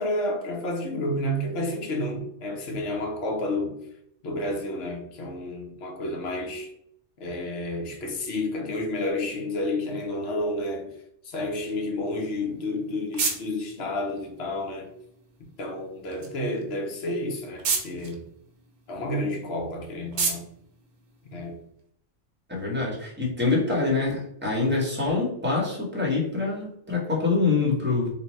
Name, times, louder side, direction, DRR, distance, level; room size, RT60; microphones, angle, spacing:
voice 1, 0.0-3.8 4.2-6.7 7.2-10.9 11.2-14.9 15.6-18.3 18.9-20.5 21.3-21.6, left 1 dB, 60° left, 1.0 m, -30 dB
sound 1, 12.4-21.8, right 5 dB, 70° right, 1.0 m, -35 dB
voice 2, 22.5-28.1, left 3 dB, 10° right, 1.0 m, -25 dB
3.2 x 2.2 x 4.1 m
omnidirectional pair, 1.3 m